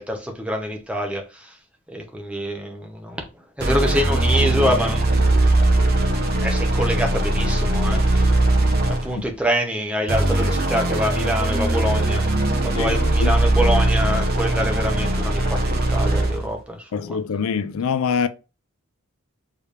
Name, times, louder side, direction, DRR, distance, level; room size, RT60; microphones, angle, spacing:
voice 1, 0.0-1.6 1.9-3.2 3.6-5.2 6.4-8.3 8.9-12.2 12.6-17.2, equal, 5° right, 0.8 m, -25 dB
sound 1, 3.6-9.2 10.1-16.5, right 1 dB, 45° right, 0.8 m, -20 dB
voice 2, 12.8-13.4 16.9-18.3, left 6 dB, 70° left, 0.4 m, -24 dB
4.6 x 3.3 x 3.3 m
head